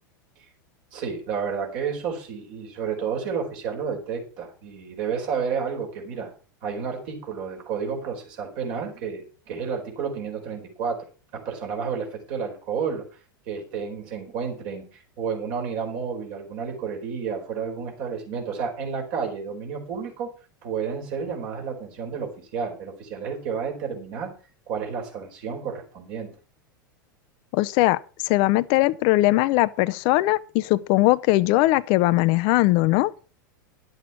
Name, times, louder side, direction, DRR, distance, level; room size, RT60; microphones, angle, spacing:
voice 1, 0.9-6.3 6.6-11.0 11.3-13.1 13.5-20.3 20.6-24.3 24.7-26.3, right 6 dB, 55° right, 4.7 m, -31 dB
voice 2, 27.5-28.0 28.2-33.1, left 19 dB, 50° left, 0.6 m, -20 dB
11.0 x 8.0 x 5.9 m
hypercardioid pair, 95°, 11 cm